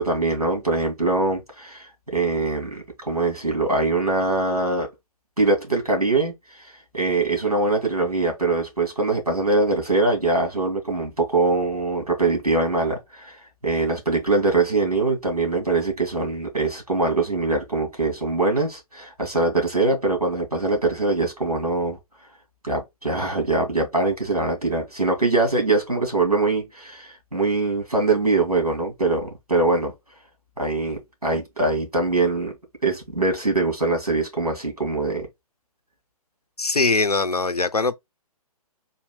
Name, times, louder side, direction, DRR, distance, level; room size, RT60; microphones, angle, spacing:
voice 1, 0.0-4.9 5.4-6.3 6.9-13.4 13.6-22.0 22.6-29.9 30.6-32.5 32.8-35.3, right 3 dB, 85° right, 2.3 m, -23 dB
voice 2, 36.6-37.9, left 3 dB, 90° left, 0.6 m, -21 dB
4.0 x 2.8 x 3.8 m
figure-of-eight pair, 130°, 19 cm